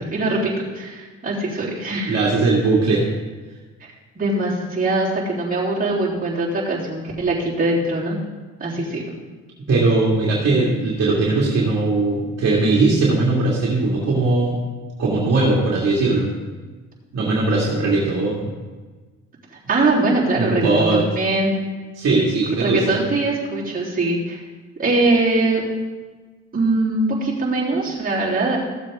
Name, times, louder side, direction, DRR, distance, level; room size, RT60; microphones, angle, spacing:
voice 1, 0.1-2.1 4.2-8.2 8.6-9.0 19.7-21.5 22.6-24.4 24.8-25.6 26.5-28.6, right 2 dB, 30° right, -7 dB, 3.7 m, -22 dB
voice 2, 2.0-3.1 9.7-14.6 15.0-16.3 17.1-18.5 20.3-21.0 22.0-23.0, right 3 dB, 55° right, -5 dB, 2.4 m, -19 dB
15.5 x 7.5 x 3.7 m, 1.3 s
cardioid pair, 90°, 30 cm